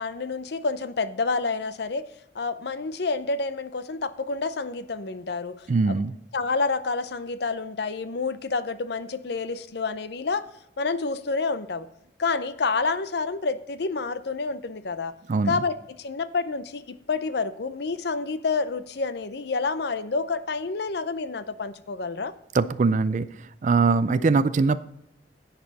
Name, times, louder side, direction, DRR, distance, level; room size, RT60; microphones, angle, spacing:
voice 1, 0.0-2.1 2.3-6.0 6.3-10.4 10.8-11.9 12.2-15.1 15.5-22.3 24.1-24.3, left 4 dB, 65° left, 13 dB, 0.6 m, -29 dB
voice 2, 5.7-6.1 15.3-15.6 22.5-23.3 23.6-24.8, right 4 dB, 45° right, 13 dB, 0.4 m, -21 dB
11.0 x 7.8 x 4.1 m, 0.80 s
head